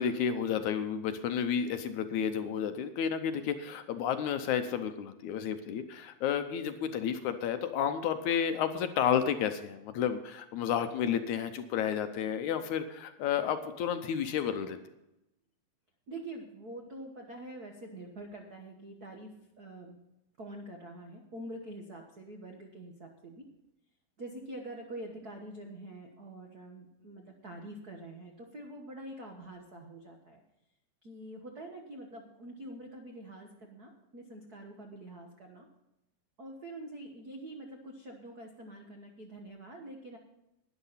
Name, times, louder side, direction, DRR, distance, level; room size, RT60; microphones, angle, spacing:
voice 1, 0.0-14.8, left 8 dB, 75° left, 9 dB, 2.0 m, -31 dB
voice 2, 16.1-19.3 19.6-20.0 20.4-23.5 24.2-30.4 31.0-35.7 36.4-40.2, right 1 dB, 60° right, 2 dB, 0.9 m, -45 dB
12.0 x 10.5 x 5.7 m, 0.89 s
omnidirectional pair, 3.9 m